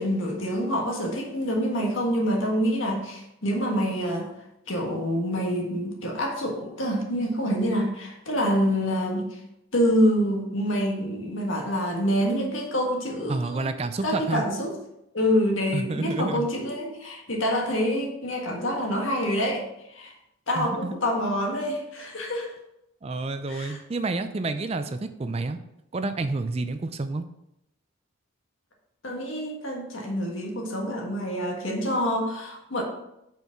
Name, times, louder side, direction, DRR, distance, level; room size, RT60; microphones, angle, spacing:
voice 1, 0.0-4.3 4.7-9.4 9.7-13.7 14.0-14.7 15.1-19.6 19.9-20.1 20.5-22.5 23.5-23.8 29.0-32.8, equal, 70° left, 0 dB, 1.5 m, -26 dB
voice 2, 13.3-14.4 15.7-16.5 20.6-20.9 23.0-25.6 25.9-27.2, right 3 dB, 30° right, 10 dB, 0.4 m, -29 dB
5.5 x 4.7 x 5.8 m, 0.84 s
head